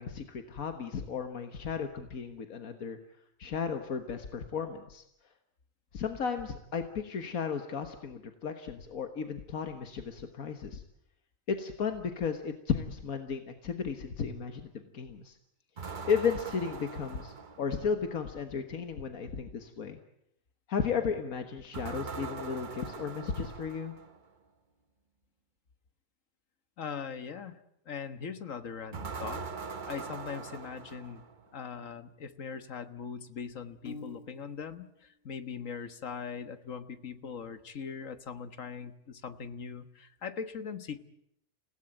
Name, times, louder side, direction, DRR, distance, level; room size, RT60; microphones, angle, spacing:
voice 1, 0.0-3.0 3.4-5.0 5.9-10.8 11.5-15.4 15.8-20.0 20.7-23.9, left 6 dB, 90° left, 6 dB, 1.8 m, -34 dB
sound 1, 15.8-18.1 21.7-24.3 28.9-31.5, right 4 dB, 40° right, 1.2 m, -42 dB
voice 2, 26.8-27.6 27.9-29.4 29.9-31.2 31.5-41.0, left 6 dB, 70° left, 10 dB, 1.7 m, -40 dB
Piano, 33.8-34.8, left 3 dB, 45° left, 1.8 m, -46 dB
28.5 x 17.0 x 9.0 m, 0.78 s
omnidirectional pair, 1.4 m